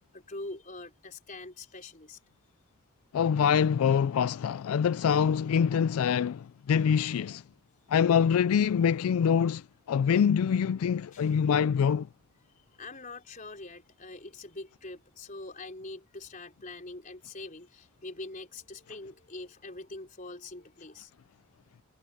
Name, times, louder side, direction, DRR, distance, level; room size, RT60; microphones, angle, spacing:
voice 1, 0.1-2.2 11.1-11.5 12.4-21.1, left 2 dB, 35° left, 4.0 m, -44 dB
voice 2, 3.1-7.4 7.9-12.1, left 7 dB, 80° left, 0.3 m, -25 dB
head